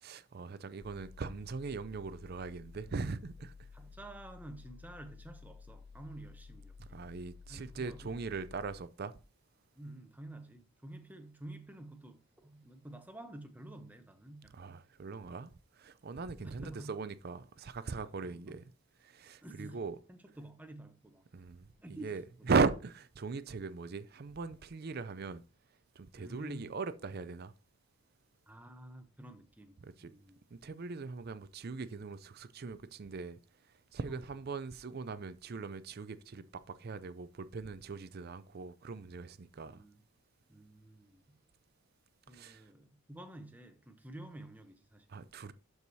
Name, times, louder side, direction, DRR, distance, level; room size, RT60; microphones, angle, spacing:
voice 1, 0.0-3.5 6.8-9.2 14.5-15.5 15.8-18.6 19.0-20.0 21.3-25.4 26.0-27.5 29.8-30.1 30.5-33.4 33.9-39.8 42.3-42.6 45.1-45.5, right 4 dB, 45° right, 0.4 m, -39 dB
sound 1, 0.8-8.8, left 5 dB, 25° left, 0.3 m, -53 dB
voice 2, 3.7-7.1 7.5-8.2 9.7-14.8 16.4-17.0 18.0-18.6 19.4-21.2 21.8-22.1 26.2-26.8 28.5-30.4 34.1-34.2 39.6-40.0 40.5-41.4 42.3-45.3, right 1 dB, 5° right, 0.7 m, -50 dB
12.0 x 4.7 x 2.7 m
head